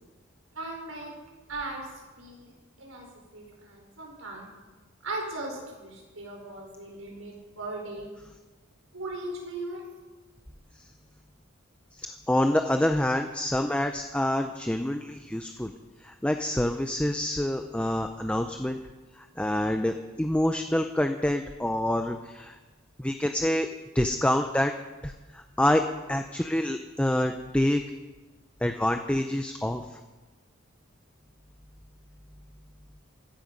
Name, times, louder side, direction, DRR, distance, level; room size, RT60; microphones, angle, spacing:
voice 1, 0.5-1.1 1.5-1.8 2.2-2.5 2.8-4.5 5.0-8.1 8.9-9.8, right 2 dB, 80° right, 0 dB, 4.9 m, -38 dB
voice 2, 12.0-15.7 16.0-18.8 19.4-22.5 23.0-23.7 23.9-24.7 25.0-25.8 26.1-27.8 28.6-29.8, left 1 dB, 5° left, 6 dB, 0.5 m, -27 dB
17.0 x 12.5 x 5.3 m, 1.2 s
head